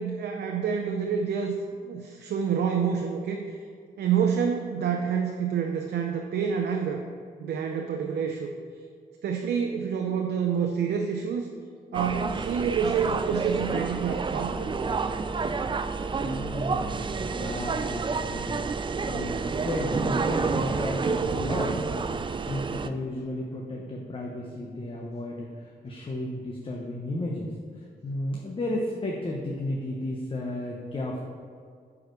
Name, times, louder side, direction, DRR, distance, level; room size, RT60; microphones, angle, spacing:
voice 1, 0.0-1.5 1.8-3.6 4.0-7.0 7.4-8.5 9.2-11.5 11.9-14.7 22.9-23.0, right 7 dB, 80° right, 3 dB, 0.6 m, -28 dB
sound 1, 11.9-22.9, right 4 dB, 30° right, 0.4 m, -29 dB
voice 2, 16.2-18.7 19.1-27.5 28.0-31.2, left 1 dB, 30° left, -2 dB, 1.0 m, -33 dB
5.8 x 4.9 x 6.5 m, 2.1 s
cardioid pair, 80°, 17 cm